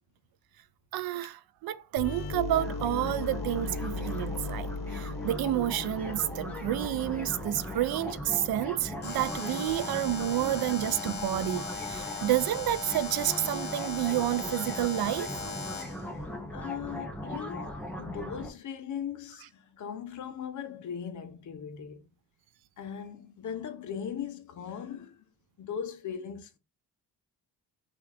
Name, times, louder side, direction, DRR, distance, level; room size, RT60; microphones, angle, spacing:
voice 1, 0.9-15.3, right 13 dB, 65° right, 0.5 m, -30 dB
sound 1, 2.0-9.5, left 3 dB, 80° left, 1.0 m, -38 dB
sound 2, 2.5-18.5, left 1 dB, 5° left, 0.7 m, -39 dB
Alarm, 9.0-16.0, left 4 dB, 25° left, 1.2 m, -38 dB
voice 2, 16.0-22.1 22.8-25.2 25.6-26.6, left 8 dB, 50° left, 0.8 m, -39 dB
5.8 x 2.5 x 3.3 m
cardioid pair, 175°, 39 cm